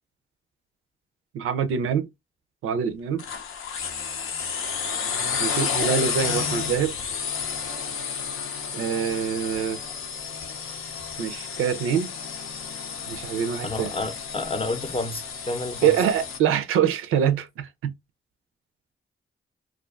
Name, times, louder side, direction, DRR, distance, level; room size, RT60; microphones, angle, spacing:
voice 1, 1.3-2.1 2.6-3.2 5.4-7.0 8.7-9.8 11.2-12.1 13.1-13.9 15.8-17.9, right 8 dB, 90° right, 0.4 m, -25 dB
sound 1, 3.2-16.4, left 6 dB, 75° left, 0.6 m, -31 dB
voice 2, 13.6-15.9, left 2 dB, 25° left, 0.6 m, -30 dB
2.4 x 2.3 x 2.3 m
supercardioid pair, 50°, 21 cm